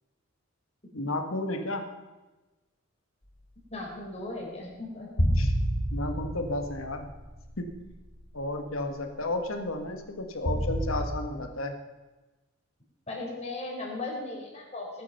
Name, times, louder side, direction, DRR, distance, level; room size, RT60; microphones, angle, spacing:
voice 1, 0.9-1.8 5.4-5.5 5.9-7.1 7.6-7.8 8.3-11.7, left 2 dB, 90° left, 5 dB, 1.8 m, -32 dB
voice 2, 3.7-5.5 13.1-15.0, left 2 dB, 35° left, -2 dB, 4.4 m, -37 dB
sound 1, 5.2-7.9 8.4-8.5 10.4-11.1, equal, 65° left, 2.1 m, -28 dB
19.0 x 8.5 x 5.9 m, 1.2 s
head